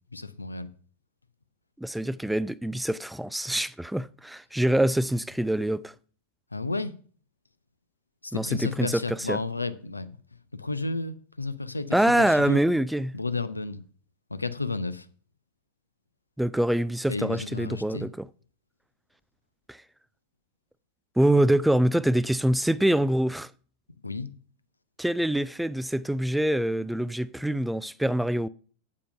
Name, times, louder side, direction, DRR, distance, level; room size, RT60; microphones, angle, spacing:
voice 1, 0.1-0.7 6.5-6.9 8.2-10.1 10.5-12.6 13.1-13.8 14.3-15.1 17.1-18.1 24.0-24.3, left 3 dB, 80° left, 0.7 m, -32 dB
voice 2, 1.8-5.9 8.3-9.4 11.9-13.2 16.4-18.3 19.7-19.8 21.2-23.5 25.0-28.5, right 1 dB, 5° right, 0.3 m, -25 dB
8.6 x 7.5 x 5.6 m
figure-of-eight pair, 90°, 0 cm